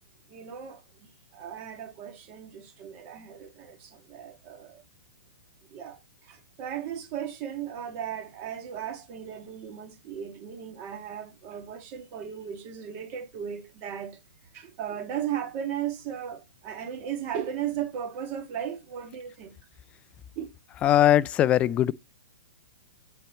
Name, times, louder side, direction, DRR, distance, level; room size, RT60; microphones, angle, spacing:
voice 1, 0.3-0.8 1.3-4.8 5.7-14.2 14.5-19.6 20.4-20.5, right 9 dB, 30° right, 2.1 m, -36 dB
voice 2, 20.8-21.9, left 12 dB, 20° left, 0.4 m, -20 dB
9.0 x 4.4 x 4.3 m
hypercardioid pair, 150°, 6 cm